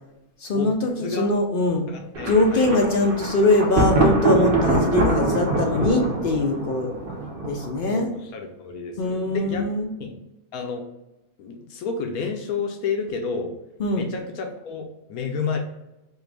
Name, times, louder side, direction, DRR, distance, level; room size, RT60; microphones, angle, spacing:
voice 1, 0.4-1.9 2.3-6.9 7.4-8.1 9.0-9.9 13.8-14.1, left 2 dB, 60° left, 2 dB, 0.5 m, -22 dB
voice 2, 1.0-1.3 1.9-2.7 7.8-9.7 10.0-10.2 10.5-10.9 11.4-13.5 13.9-15.6, left 5 dB, 80° left, 3 dB, 1.1 m, -30 dB
Thunder, 2.1-8.0, right 2 dB, 45° right, 0.9 m, -23 dB
4.2 x 2.5 x 3.3 m, 0.92 s
omnidirectional pair, 1.5 m